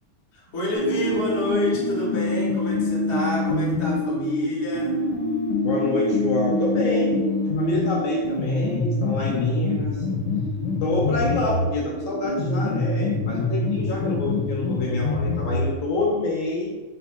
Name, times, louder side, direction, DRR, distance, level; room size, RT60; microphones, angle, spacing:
voice 1, 0.3-5.0, left 1 dB, 45° left, -4 dB, 1.0 m, -28 dB
sound 1, 0.8-4.0 4.8-11.7 12.3-15.7, left 3 dB, 85° left, 1.5 m, -26 dB
sound 2, 0.8-15.8, right 1 dB, 80° right, 1.5 m, -30 dB
voice 2, 5.6-10.1 10.8-16.7, left 2 dB, 70° left, -3 dB, 1.4 m, -27 dB
4.2 x 2.2 x 4.2 m, 1.2 s
omnidirectional pair, 2.4 m